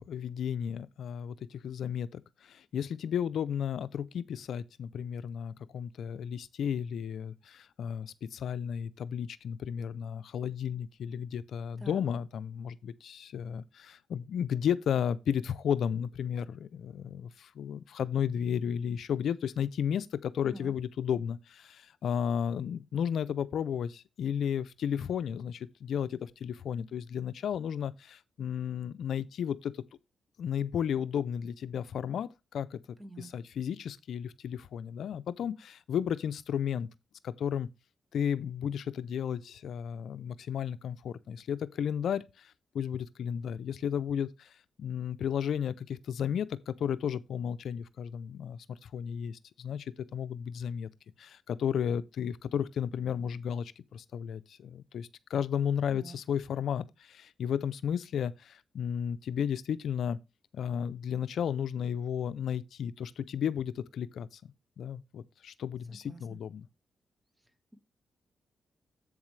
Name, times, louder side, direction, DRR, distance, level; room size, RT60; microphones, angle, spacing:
voice 1, 0.1-29.8 30.4-36.9 37.2-37.7 38.1-50.9 51.2-60.2 60.5-66.7, left 8 dB, 80° left, 0.4 m, -33 dB
voice 2, 33.0-33.3 55.9-56.2 65.9-66.4, right 1 dB, 15° right, 1.5 m, -46 dB
8.1 x 7.0 x 3.2 m
cardioid pair, 75°, 0 cm